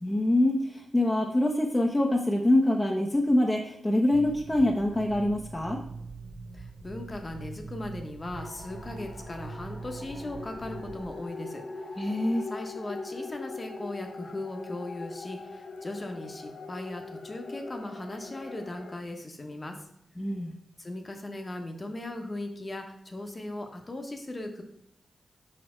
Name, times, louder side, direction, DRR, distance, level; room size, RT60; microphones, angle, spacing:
voice 1, 0.0-5.8 12.0-12.4 20.2-20.5, left 1 dB, 20° left, 0 dB, 0.9 m, -25 dB
sound 1, 4.1-11.1, right 3 dB, 35° right, 1.1 m, -43 dB
voice 2, 6.5-12.2 12.5-19.8 20.8-24.6, left 1 dB, 35° left, 4 dB, 1.1 m, -38 dB
sound 2, 8.3-19.0, left 3 dB, 75° left, 1.0 m, -41 dB
4.9 x 4.4 x 4.5 m, 0.75 s
cardioid pair, 50°, 0 cm